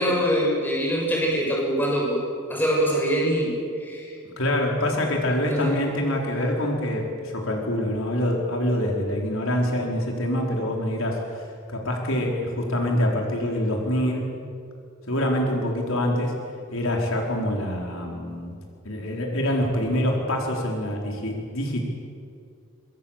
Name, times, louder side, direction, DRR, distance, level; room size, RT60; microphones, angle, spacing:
voice 1, 0.0-2.2 2.5-3.5 3.8-4.1 5.4-5.8, equal, 10° left, -3 dB, 6.7 m, -24 dB
voice 2, 4.4-14.3 15.1-16.3 16.7-18.5 18.8-21.8, left 1 dB, 75° left, 0 dB, 4.7 m, -25 dB
26.5 x 24.5 x 7.6 m, 2.3 s
head